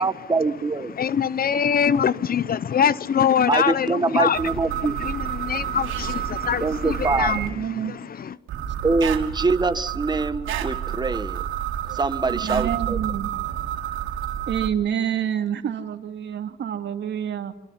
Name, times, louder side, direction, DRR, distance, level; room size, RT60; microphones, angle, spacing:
voice 1, 0.0-0.9 3.5-5.0 6.6-7.3 8.8-11.4 11.9-13.0, right 3 dB, 20° right, 1.6 m, -24 dB
voice 2, 0.9-8.3, left 8 dB, 50° left, 0.9 m, -24 dB
sound 1, 4.3-7.5 8.5-14.7, right 10 dB, 85° right, 3.4 m, -29 dB
voice 3, 7.2-8.0 11.8-12.0 12.3-13.3 14.5-17.5, right 9 dB, 65° right, 2.6 m, -28 dB
27.5 x 25.0 x 5.9 m
cardioid pair, 90°, 20 cm